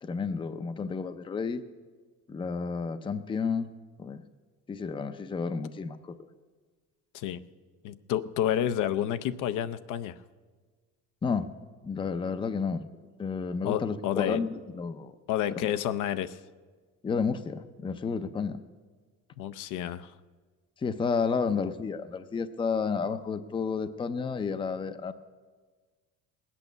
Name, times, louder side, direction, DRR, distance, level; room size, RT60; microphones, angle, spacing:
voice 1, 0.0-1.6 2.3-3.7 4.0-4.2 4.7-6.2 11.2-11.5 11.8-12.8 13.2-15.1 17.0-18.6 20.8-25.1, left 5 dB, 15° left, 12 dB, 0.5 m, -31 dB
voice 2, 7.8-10.2 13.6-14.4 15.3-16.4 19.4-20.1, left 11 dB, 70° left, 13 dB, 0.6 m, -30 dB
19.5 x 8.5 x 6.8 m, 1.4 s
cardioid pair, 125°, 32 cm